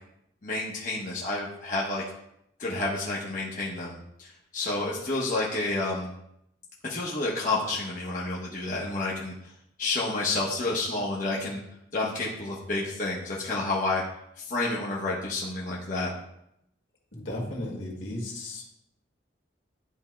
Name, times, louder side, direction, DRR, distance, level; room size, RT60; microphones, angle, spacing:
voice 1, 0.4-2.0 2.6-6.1 6.8-9.3 9.8-11.6 11.9-14.0 14.4-16.1, left 2 dB, 45° left, -5 dB, 1.0 m, -30 dB
voice 2, 17.1-18.6, left 1 dB, 80° left, -2 dB, 1.9 m, -35 dB
11.0 x 4.4 x 2.2 m, 0.78 s
head